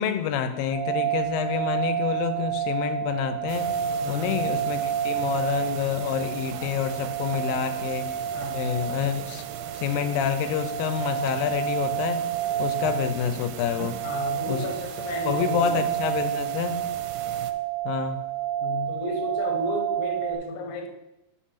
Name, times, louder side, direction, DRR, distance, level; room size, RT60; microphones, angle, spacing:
voice 1, 0.0-3.7 4.1-8.1 8.5-9.4 9.7-12.2 12.6-14.0 14.5-14.7 15.2-16.8 17.9-18.2, left 8 dB, 90° left, 10 dB, 2.4 m, -28 dB
sound 1, 0.7-20.3, right 10 dB, ahead, 0.5 m, -30 dB
sound 2, 3.5-17.5, right 10 dB, 80° right, 1.9 m, -39 dB
voice 2, 4.0-4.4 8.3-8.7 14.0-15.7 18.6-20.9, left 3 dB, 70° left, 5 dB, 2.2 m, -33 dB
6.5 x 5.6 x 5.8 m, 0.91 s
omnidirectional pair, 3.9 m